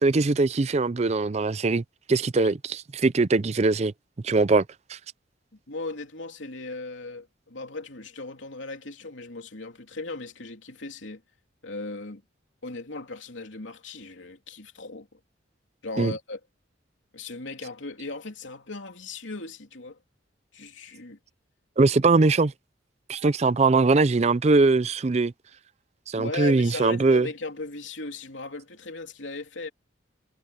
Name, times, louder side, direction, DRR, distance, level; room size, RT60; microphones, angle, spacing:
voice 1, 0.0-1.8 2.1-3.9 4.2-4.6 4.9-5.0 16.0-16.1 21.8-22.5 23.1-25.3 26.1-27.3, right 3 dB, 35° right, 0.4 m, -21 dB
voice 2, 5.7-11.2 11.6-12.2 12.6-15.2 15.8-16.4 17.1-20.0 20.5-21.2 26.1-29.7, left 3 dB, 80° left, 3.0 m, -37 dB
head